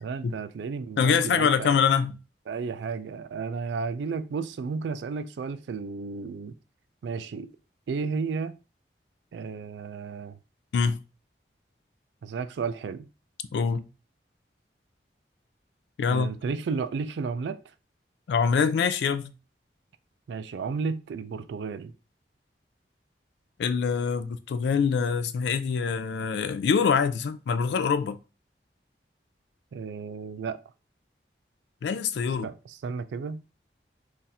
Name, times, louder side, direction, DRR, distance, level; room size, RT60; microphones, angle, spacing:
voice 1, 0.0-1.8 2.5-6.6 7.0-7.5 7.9-8.6 9.3-10.4 12.2-13.1 16.1-17.6 20.3-21.9 29.7-30.6 32.4-33.4, right 5 dB, 80° right, 0.3 m, -33 dB
voice 2, 1.0-2.1 10.7-11.0 13.5-13.8 16.0-16.3 18.3-19.2 23.6-28.2 31.8-32.5, left 6 dB, 75° left, 0.3 m, -24 dB
2.7 x 2.4 x 4.0 m
head